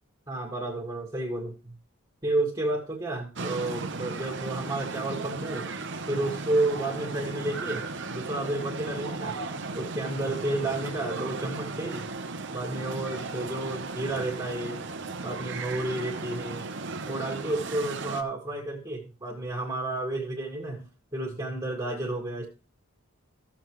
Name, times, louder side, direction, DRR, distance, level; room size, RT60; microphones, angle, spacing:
voice 1, 0.3-1.7 2.2-5.7 6.1-12.1 12.5-14.8 15.2-16.7 17.1-22.5, right 2 dB, 20° right, -1 dB, 1.9 m, -31 dB
sound 1, 3.4-18.2, right 3 dB, 55° right, 0.9 m, -36 dB
14.5 x 7.3 x 3.1 m, 0.32 s
head